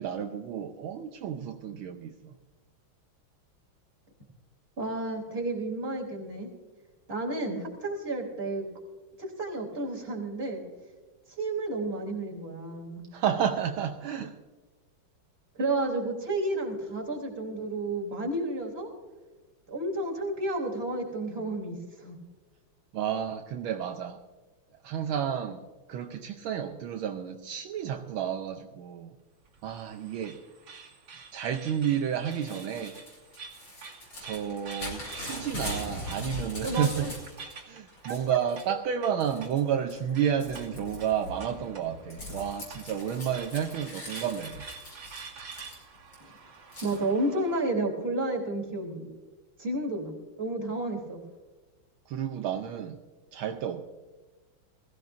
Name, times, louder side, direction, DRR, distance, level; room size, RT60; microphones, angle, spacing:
voice 1, 0.0-2.3 13.1-14.4 22.9-24.2 24.8-29.1 29.6-30.4 31.3-33.0 34.2-37.1 37.6-44.7 52.1-53.0 53.3-53.9, right 8 dB, 75° right, 5 dB, 1.6 m, -31 dB
voice 2, 4.8-6.5 7.1-8.7 9.2-10.6 11.4-13.1 15.6-18.9 19.7-22.2 36.6-37.1 38.1-38.4 38.7-38.8 46.2-46.3 46.8-49.1 49.6-51.2, right 2 dB, 25° right, -2 dB, 3.6 m, -31 dB
sound 1, 29.5-47.6, right 5 dB, 60° right, 2.8 m, -48 dB
Crumpling crinkling / Tearing, 32.3-37.5 37.9-38.7 39.2-39.6 39.9-46.1 46.7-47.0, left 1 dB, 55° left, 6.0 m, -41 dB
21.0 x 15.5 x 2.6 m, 1.3 s
omnidirectional pair, 2.3 m